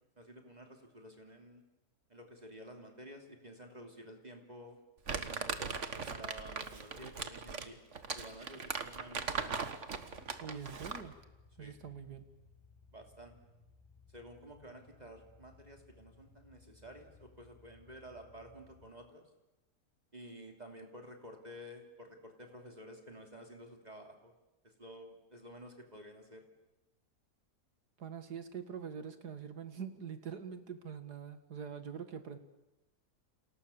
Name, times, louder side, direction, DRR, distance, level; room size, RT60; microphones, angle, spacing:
voice 1, 0.2-1.6 2.1-4.8 5.1-7.8 8.1-9.6 11.6-11.8 12.9-13.3 14.1-19.2 20.1-24.3 24.6-26.5, equal, 25° right, 3 dB, 3.1 m, -52 dB
Crumpling crinkling, 5.1-11.1, right 5 dB, 50° right, 1.8 m, -39 dB
sound 1, 9.9-18.9, left 4 dB, 15° left, 7.7 m, -62 dB
voice 2, 10.4-11.1 11.6-12.2 28.0-32.4, right 7 dB, 80° right, 9 dB, 2.4 m, -44 dB
30.0 x 27.5 x 7.2 m, 1.0 s
omnidirectional pair, 1.7 m